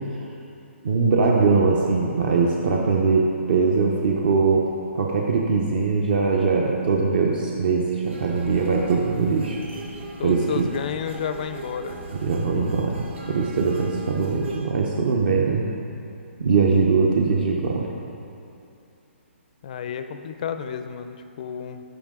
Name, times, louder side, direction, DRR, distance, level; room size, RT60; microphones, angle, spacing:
voice 1, 0.8-9.6 10.2-10.6 12.2-15.7 16.4-17.9, right 4 dB, 45° right, -1 dB, 0.7 m, -21 dB
sound 1, 8.0-14.6, right 3 dB, 75° right, 2.0 m, -38 dB
voice 2, 10.2-12.0 19.6-21.8, left 7 dB, 35° left, 9 dB, 0.4 m, -31 dB
13.0 x 5.2 x 3.7 m, 2.6 s
hypercardioid pair, 165°, 7 cm